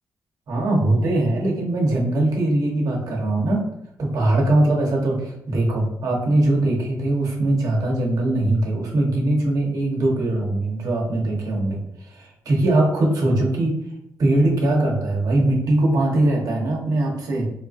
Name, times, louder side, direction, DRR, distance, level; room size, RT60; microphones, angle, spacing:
voice 1, 0.5-3.7 4.0-13.8 14.2-17.5, right 1 dB, 70° right, -1 dB, 1.0 m, -21 dB
3.9 x 2.4 x 2.5 m, 0.78 s
cardioid pair, 90°, 7 cm